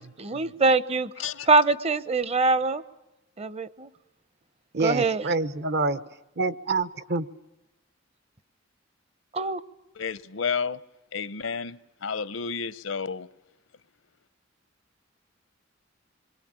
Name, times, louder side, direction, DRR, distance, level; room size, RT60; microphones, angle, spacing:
voice 1, 0.2-1.1 1.5-2.8 3.4-3.9 4.8-5.2 9.3-9.6, right 3 dB, 30° right, 0.9 m, -23 dB
voice 2, 1.2-1.5 9.9-10.8 11.1-13.3, left 6 dB, 80° left, 0.9 m, -31 dB
voice 3, 4.7-6.0 6.4-7.3, right 3 dB, 60° right, 1.1 m, -27 dB
27.0 x 22.5 x 8.9 m
head